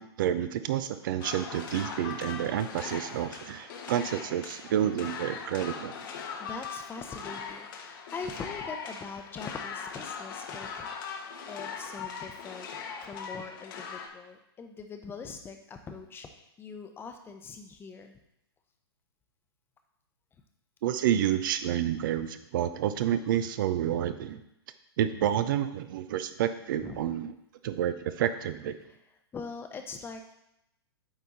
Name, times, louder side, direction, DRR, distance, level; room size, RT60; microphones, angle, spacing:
voice 1, 0.0-6.0 20.8-24.4 25.0-27.3 27.6-28.7, right 10 dB, 55° right, 11 dB, 0.5 m, -29 dB
sound 1, 1.2-14.1, left 6 dB, 55° left, 1.0 m, -40 dB
voice 2, 6.2-12.7 13.0-18.1 26.8-27.0 29.3-30.3, left 5 dB, 15° left, 6 dB, 0.7 m, -42 dB
8.8 x 3.5 x 4.1 m, 0.83 s
hypercardioid pair, 115°, 13 cm